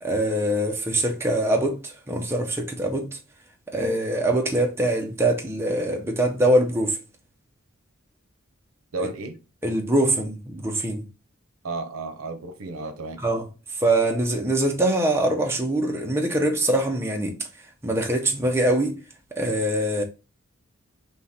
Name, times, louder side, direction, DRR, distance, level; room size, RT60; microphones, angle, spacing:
voice 1, 0.0-3.2 3.7-7.0 9.0-9.1 9.6-11.0 13.2-13.5 13.8-17.4 17.8-19.0 19.4-20.0, right 1 dB, 10° right, 0.6 m, -23 dB
voice 2, 8.9-9.4 11.6-13.2, right 3 dB, 85° right, 0.6 m, -32 dB
3.6 x 2.8 x 4.1 m
head